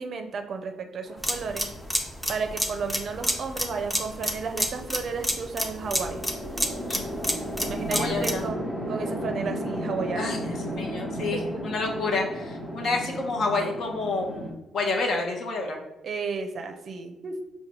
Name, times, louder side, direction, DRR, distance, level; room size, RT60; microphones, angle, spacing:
voice 1, 0.0-1.7 2.3-6.3 7.6-10.3 10.7-11.8 13.0-13.1 16.0-17.4, right 5 dB, 55° right, 6 dB, 0.4 m, -33 dB
Chatter / Traffic noise roadway noise / Train, 1.1-14.5, equal, 35° left, 1.0 m, -35 dB
sound 1, 1.2-8.5, equal, 5° left, 0.5 m, -29 dB
voice 2, 7.9-8.4 10.1-15.8, left 3 dB, 65° left, 2 dB, 0.7 m, -29 dB
4.6 x 2.2 x 2.9 m, 1.0 s
cardioid pair, 90°, 0 cm